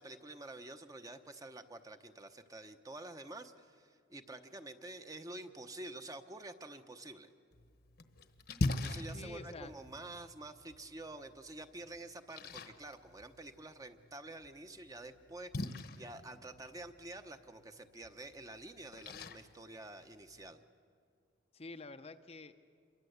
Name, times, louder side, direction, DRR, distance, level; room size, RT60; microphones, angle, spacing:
voice 1, 0.0-7.3 8.7-20.6, right 2 dB, 20° right, 8 dB, 0.9 m, -49 dB
Splash splatter, 7.5-20.5, left 2 dB, 50° left, 1.1 m, -44 dB
voice 2, 9.1-9.7 21.5-22.5, left 3 dB, 30° left, 8 dB, 0.7 m, -48 dB
27.5 x 23.5 x 8.1 m, 2.2 s
head